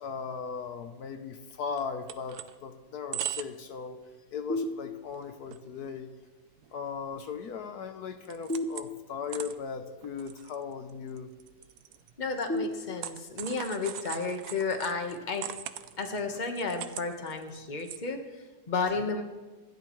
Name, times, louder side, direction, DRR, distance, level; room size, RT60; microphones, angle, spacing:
voice 1, 0.0-4.0 4.3-6.1 6.7-11.3 19.0-19.2, left 6 dB, 75° left, 7 dB, 1.4 m, -38 dB
sound 1, 1.5-1.6 1.8-2.6 2.9-3.7 4.0-4.2 4.7-4.8 5.1-5.6 5.9-6.0 6.6-7.6 7.9-9.0 9.3-18.0, right 10 dB, 75° right, 1.2 m, -41 dB
sound 2, 4.5-5.4 8.5-9.5 12.5-13.5, left 1 dB, 10° left, 0.7 m, -35 dB
voice 2, 12.2-15.5 16.0-19.2, left 4 dB, 30° left, 4 dB, 1.4 m, -32 dB
26.0 x 11.5 x 3.2 m, 1.3 s
omnidirectional pair, 1.7 m